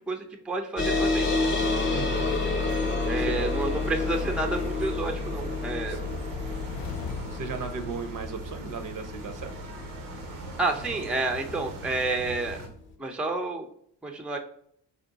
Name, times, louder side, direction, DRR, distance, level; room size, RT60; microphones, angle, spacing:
voice 1, 0.1-1.5 3.1-6.0 10.6-12.6 13.0-13.7 14.0-14.4, right 3 dB, 5° right, 4 dB, 0.4 m, -30 dB
sound 1, 0.8-11.7, left 3 dB, 30° left, 0.8 m, -30 dB
sound 2, 1.5-12.7, right 3 dB, 85° right, 0.8 m, -41 dB
voice 2, 1.9-2.3 2.8-3.3 5.9-6.0 7.3-9.5, right 5 dB, 50° right, 7 dB, 0.7 m, -36 dB
sound 3, 5.9-8.6, left 7 dB, 60° left, 0.5 m, -39 dB
3.7 x 2.2 x 3.8 m, 0.65 s
supercardioid pair, 60°, 41 cm